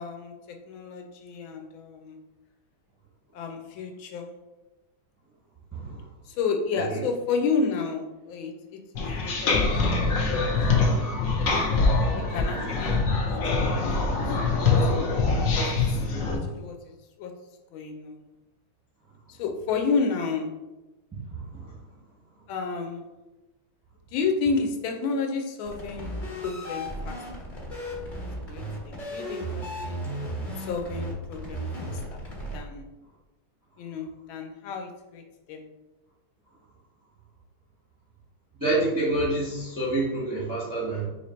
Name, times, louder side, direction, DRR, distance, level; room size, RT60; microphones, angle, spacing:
voice 1, 0.0-2.2 3.3-4.3 6.2-10.5 11.4-11.7 12.1-14.9 15.5-17.3 17.7-18.2 19.3-20.5 22.5-23.1 24.1-27.7 28.5-30.0 30.6-32.2 32.5-32.9 33.8-35.6, left 4 dB, 80° left, 3 dB, 1.4 m, -32 dB
voice 2, 5.7-6.1 6.7-7.0 21.3-21.8 38.6-41.1, right 2 dB, 20° right, -6 dB, 0.5 m, -28 dB
sound 1, 8.9-16.4, left 3 dB, 65° left, 0.8 m, -24 dB
sound 2, 25.7-32.6, equal, 30° left, 1.1 m, -35 dB
3.2 x 2.9 x 4.2 m, 1.0 s
omnidirectional pair, 2.2 m